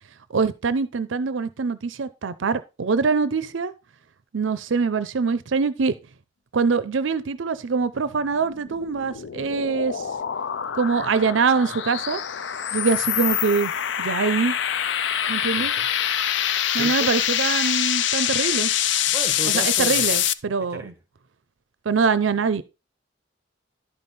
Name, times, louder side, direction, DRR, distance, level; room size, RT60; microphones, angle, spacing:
voice 1, 0.3-3.7 4.3-5.9 6.5-10.0 10.7-12.2 12.7-13.7 14.0-14.6 15.3-15.7 16.7-18.7 19.5-20.9 21.9-22.6, right 5 dB, 75° right, 0.5 m, -23 dB
sound 1, 8.3-20.3, left 10 dB, 70° left, 0.5 m, -25 dB
voice 2, 15.6-15.9 16.5-17.1 19.0-20.2 20.7-21.0, right 3 dB, 10° right, 1.4 m, -35 dB
11.5 x 5.5 x 4.1 m
head